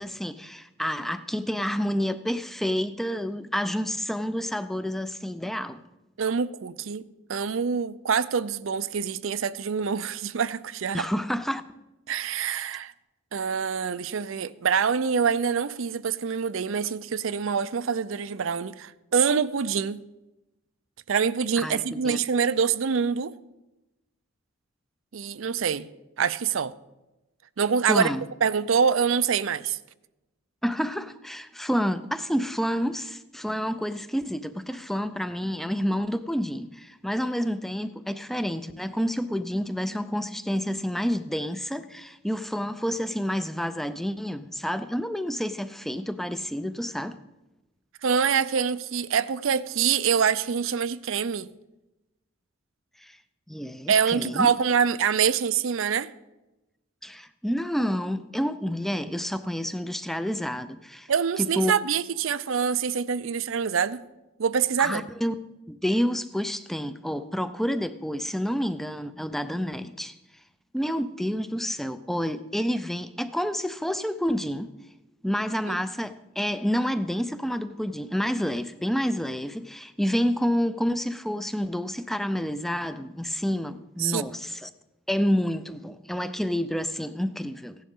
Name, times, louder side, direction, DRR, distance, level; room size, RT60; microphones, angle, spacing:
voice 1, 0.0-5.8 10.9-11.6 21.6-22.2 27.9-28.3 30.6-47.2 53.0-53.2 53.5-54.5 57.0-61.1 61.4-61.7 64.8-65.3 65.7-70.2 70.7-74.7 75.2-84.7 85.1-87.8, equal, ahead, 0.4 m, -29 dB
voice 2, 6.2-7.0 7.3-11.1 12.1-12.9 13.3-20.0 21.1-23.3 25.1-25.9 26.2-26.7 27.6-28.1 28.4-29.8 48.0-51.5 53.9-56.1 61.1-64.0 64.4-65.0 75.7-75.8 84.0-84.2, right 6 dB, 70° right, 0.5 m, -25 dB
16.0 x 11.0 x 3.7 m
head